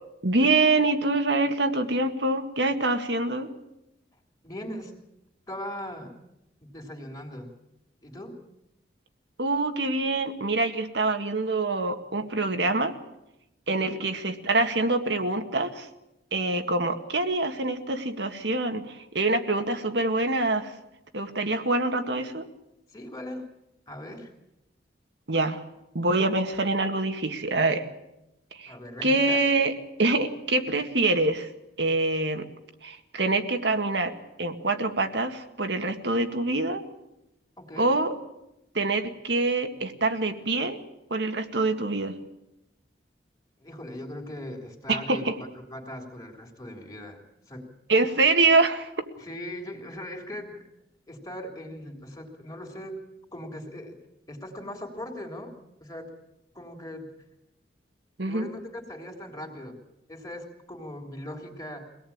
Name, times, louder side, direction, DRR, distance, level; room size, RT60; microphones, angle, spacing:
voice 1, 0.2-3.5 9.4-12.9 13.7-15.9 16.3-20.7 21.1-22.4 25.3-25.6 25.9-27.9 28.5-28.7 29.0-29.7 30.0-31.5 31.8-32.5 32.8-34.1 34.4-36.8 37.8-38.2 38.7-40.8 41.1-42.2 44.9-45.4 47.9-49.1 58.2-58.5, right 2 dB, 70° right, 7 dB, 1.9 m, -25 dB
voice 2, 4.4-4.9 5.5-6.1 6.6-7.5 8.0-8.4 13.8-14.0 22.9-23.5 23.9-24.3 28.7-29.4 37.6-37.9 43.6-47.7 49.2-50.6 51.1-53.0 53.3-54.0 54.3-55.5 55.8-56.1 56.5-57.1 58.2-59.8 60.1-61.9, left 1 dB, 20° left, 3 dB, 3.3 m, -39 dB
24.5 x 18.0 x 8.8 m, 0.90 s
head